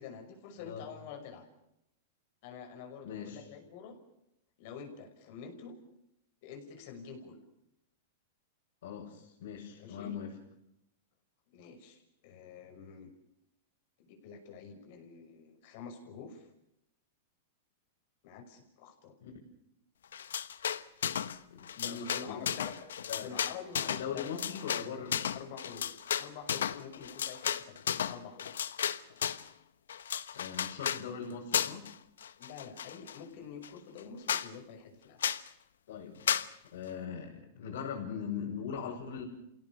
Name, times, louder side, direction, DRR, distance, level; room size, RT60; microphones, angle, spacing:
voice 1, 0.0-1.5 2.4-4.0 4.6-5.8 6.4-7.4 9.8-10.2 11.5-13.1 14.0-16.5 18.2-19.2 21.8-22.8 23.1-24.7 25.0-25.1 25.3-28.5 32.4-35.2, left 6 dB, 55° left, 5 dB, 6.0 m, -47 dB
voice 2, 3.0-3.4 8.8-10.3 19.2-19.3 21.5-22.5 23.1-23.4 24.0-25.2 30.3-31.9 35.9-36.4 36.7-39.3, left 7 dB, 70° left, -4 dB, 6.3 m, -40 dB
sound 1, 20.1-21.4 21.6-29.5 29.9-31.0 31.5-31.9 32.2-33.2 33.6-33.7 34.0-34.1 34.3-34.5 35.2-35.5 36.3-36.5, left 9 dB, 90° left, 1.1 m, -34 dB
28.5 x 17.0 x 6.9 m, 0.81 s
hypercardioid pair, 135°, 0 cm